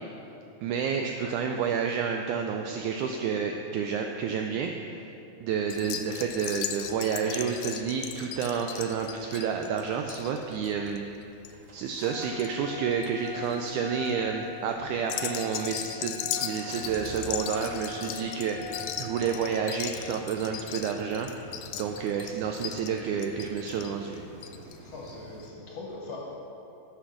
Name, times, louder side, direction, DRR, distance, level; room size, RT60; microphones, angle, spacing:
voice 1, 0.6-5.1 5.4-11.0 11.7-21.3 21.7-24.2, right 6 dB, 85° right, 4 dB, 1.7 m, -30 dB
sound 1, 5.7-12.5 12.8-13.3 13.8-14.1 15.0-24.8 25.1-25.2 25.4-25.5, left 11 dB, 80° left, 2.1 m, -37 dB
Engine starting, 11.1-25.5, left 2 dB, 65° right, 1.1 m, -43 dB
voice 2, 24.8-26.2, left 3 dB, 60° left, -4 dB, 1.8 m, -41 dB
9.9 x 5.8 x 6.4 m, 2.8 s
omnidirectional pair, 4.0 m